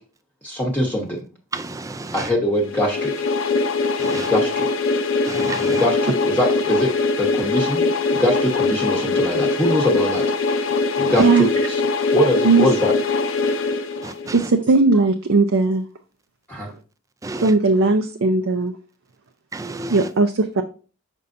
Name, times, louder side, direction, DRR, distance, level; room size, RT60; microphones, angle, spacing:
voice 1, 0.4-1.2 2.1-3.1 4.1-4.7 5.7-6.9 7.2-7.8 8.1-10.2 11.0-11.8 12.1-12.9 16.5-16.7, equal, 10° left, 0.9 m, -22 dB
voice 2, 1.5-2.1 4.0-4.3 5.3-5.8 14.0-14.1 17.2-17.4 19.5-19.9, right 3 dB, 15° right, 0.3 m, -31 dB
sound 1, 2.7-14.5, left 4 dB, 80° left, 0.7 m, -22 dB
voice 3, 14.3-15.8 17.4-18.7 19.9-20.6, right 3 dB, 75° right, 0.5 m, -17 dB
6.7 x 5.3 x 2.6 m
head